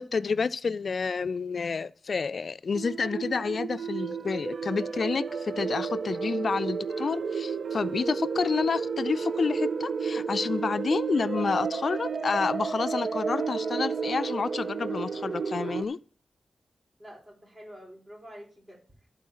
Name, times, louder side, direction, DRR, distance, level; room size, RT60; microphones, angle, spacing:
voice 1, 0.0-16.0, left 5 dB, 70° left, 0.3 m, -29 dB
sound 1, 2.7-15.8, right 5 dB, 70° right, 0.5 m, -32 dB
voice 2, 17.0-19.1, equal, 35° right, 4.3 m, -48 dB
12.5 x 4.5 x 5.5 m
wide cardioid pair, 75°, 0 cm